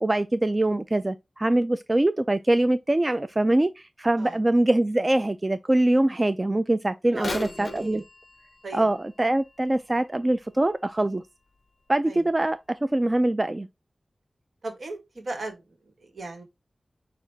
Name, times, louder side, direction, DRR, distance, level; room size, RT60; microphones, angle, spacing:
voice 1, 0.0-8.0 8.7-11.2 11.9-13.7, right 1 dB, 25° right, 0.3 m, -23 dB
Bird vocalization bird call bird song / Telephone, 7.1-11.0 11.5-11.6 12.4-12.5 13.2-13.3, left 3 dB, 50° left, 0.4 m, -40 dB
voice 2, 7.1-8.0 8.6-8.9 12.1-12.3 14.6-15.6 16.0-16.4, right 2 dB, 70° right, 1.4 m, -36 dB
6.0 x 2.4 x 3.3 m
wide cardioid pair, 75°, 0 cm